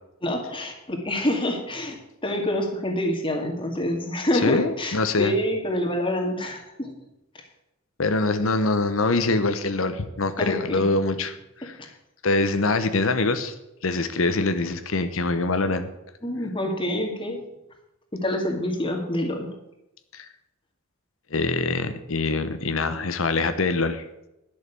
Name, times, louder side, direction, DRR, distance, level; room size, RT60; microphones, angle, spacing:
voice 1, 0.2-2.0 2.2-6.9 10.4-10.9 11.6-11.7 16.2-17.4 18.1-19.5, left 1 dB, 25° left, 2 dB, 2.2 m, -27 dB
voice 2, 4.4-5.3 8.0-11.7 12.2-13.5 13.8-15.9 20.1-20.3 21.3-24.1, left 3 dB, 70° left, 10 dB, 0.9 m, -24 dB
11.5 x 6.7 x 8.2 m, 0.90 s
head